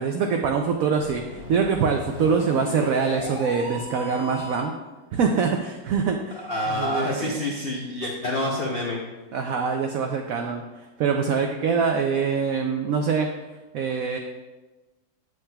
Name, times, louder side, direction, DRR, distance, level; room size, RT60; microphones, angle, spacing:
voice 1, 0.0-4.7 5.1-7.3 9.3-10.6 11.0-13.3 13.7-14.2, right 5 dB, 85° right, 4 dB, 0.7 m, -24 dB
sound 1, 1.0-4.8, equal, 15° right, 1.9 m, -36 dB
voice 2, 6.4-9.0, left 1 dB, 80° left, -1 dB, 0.5 m, -27 dB
7.7 x 7.3 x 2.2 m, 1.2 s
omnidirectional pair, 2.0 m